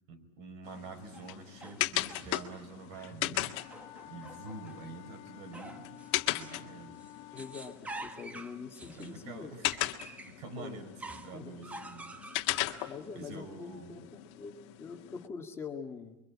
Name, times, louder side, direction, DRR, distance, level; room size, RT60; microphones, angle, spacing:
voice 1, 0.1-3.5 4.1-7.0 8.9-9.7 10.2-12.2 13.1-14.0, right 3 dB, 55° right, 7 dB, 5.3 m, -47 dB
sound 1, 0.6-15.3, left 17 dB, 55° left, 1.7 m, -38 dB
sound 2, 1.1-2.7 3.6-4.9 5.5-6.7 7.0-10.4 11.0-13.3, right 2 dB, 10° right, 1.1 m, -48 dB
voice 2, 2.9-3.4 7.3-9.5 10.6-10.8 11.3-11.5 12.8-16.2, left 5 dB, 15° left, 1 dB, 2.0 m, -44 dB
Wind instrument woodwind instrument, 3.4-7.8, left 12 dB, 30° left, 2.0 m, -52 dB
29.0 x 24.0 x 8.7 m, 0.87 s
cardioid pair, 180°, 17 cm